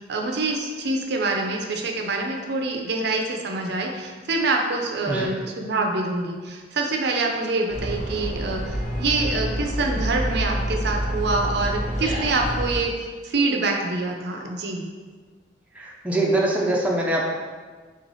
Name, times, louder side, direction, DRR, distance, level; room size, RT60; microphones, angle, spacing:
voice 1, 0.0-14.8, right 3 dB, 65° right, 2 dB, 0.5 m, -26 dB
sound 1, 7.7-12.7, equal, 40° left, 0.9 m, -28 dB
voice 2, 15.8-17.3, right 1 dB, 10° right, -3 dB, 0.5 m, -23 dB
4.2 x 3.1 x 4.0 m, 1.5 s
head